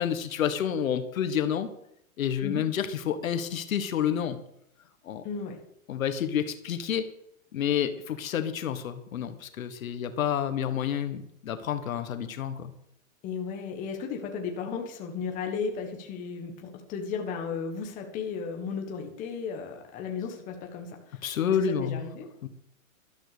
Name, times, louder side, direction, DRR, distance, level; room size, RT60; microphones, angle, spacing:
voice 1, 0.0-1.7 2.2-4.4 5.0-5.2 5.9-7.0 7.5-12.7 21.2-22.0 22.4-22.5, left 8 dB, 75° left, 10 dB, 1.6 m, -29 dB
voice 2, 5.2-5.6 13.2-21.3 21.6-22.3, left 5 dB, 20° left, 3 dB, 1.6 m, -35 dB
13.0 x 12.5 x 5.1 m, 0.73 s
hypercardioid pair, 170°, 41 cm